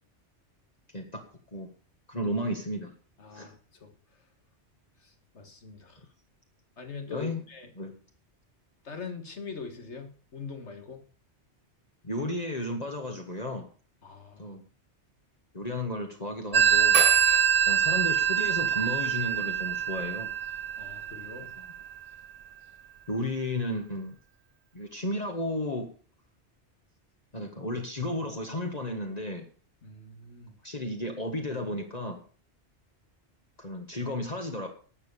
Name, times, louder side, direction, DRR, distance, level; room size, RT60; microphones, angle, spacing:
voice 1, 2.1-2.9 3.3-3.5 7.1-7.4 7.8-7.9 12.0-13.7 14.4-14.6 15.5-17.0 17.7-20.3 23.1-24.1 24.7-25.9 27.3-29.4 30.6-32.2 33.6-34.7, left 1 dB, 35° left, 2 dB, 1.7 m, -33 dB
voice 2, 3.2-3.9 5.0-6.1 6.8-7.7 8.8-11.0 14.0-14.6 20.8-21.5 29.8-30.5, left 5 dB, 80° left, 6 dB, 2.2 m, -43 dB
Telephone, 16.5-21.9, right 8 dB, 45° right, 0.6 m, -24 dB
12.0 x 8.1 x 6.9 m, 0.41 s
omnidirectional pair, 1.2 m